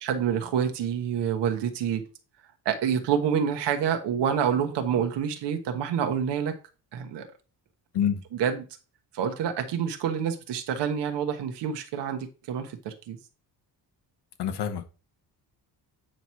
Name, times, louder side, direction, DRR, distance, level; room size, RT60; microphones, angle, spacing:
voice 1, 0.0-2.0 2.6-6.5 6.9-7.3 8.4-8.6 9.1-13.2, right 8 dB, 90° right, 1.2 m, -27 dB
voice 2, 14.4-14.8, left 8 dB, 75° left, 1.2 m, -26 dB
8.9 x 3.1 x 5.6 m
cardioid pair, 155°, 41 cm